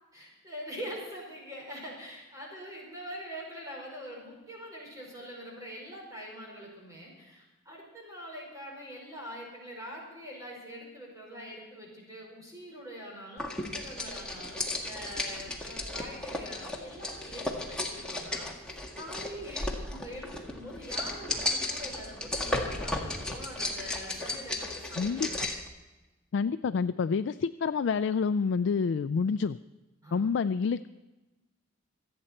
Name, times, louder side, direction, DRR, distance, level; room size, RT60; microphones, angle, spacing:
voice 1, 0.1-25.4 30.0-30.3, equal, 15° right, -3 dB, 4.9 m, -44 dB
sound 1, 13.4-25.7, left 2 dB, 5° left, 1.7 m, -35 dB
voice 2, 25.0-25.3 26.3-29.6 30.1-30.9, left 5 dB, 60° left, 11 dB, 0.3 m, -28 dB
26.0 x 8.9 x 4.3 m, 1.1 s
head